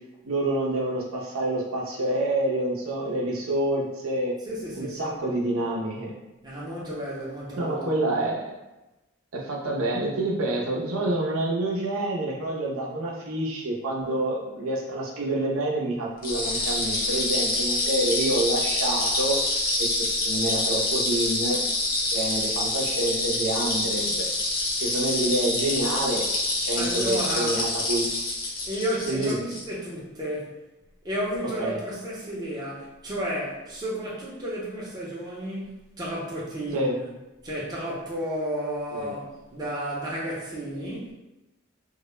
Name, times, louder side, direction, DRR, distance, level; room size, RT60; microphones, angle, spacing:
voice 1, 0.2-4.3 4.7-6.1 7.6-8.5 9.3-19.4 19.8-21.6 22.1-24.3 24.8-26.2 26.6-28.0 29.1-29.4 31.6-31.8 36.7-36.9 38.9-39.1, right 1 dB, 85° right, -3 dB, 0.6 m, -27 dB
voice 2, 4.4-5.1 6.4-7.9 26.7-27.6 28.7-30.6 31.0-37.1 37.4-41.1, equal, 20° right, -6 dB, 0.5 m, -32 dB
sound 1, 16.2-29.6, left 2 dB, 45° left, 0.5 m, -26 dB
2.2 x 2.0 x 3.0 m, 1.0 s
head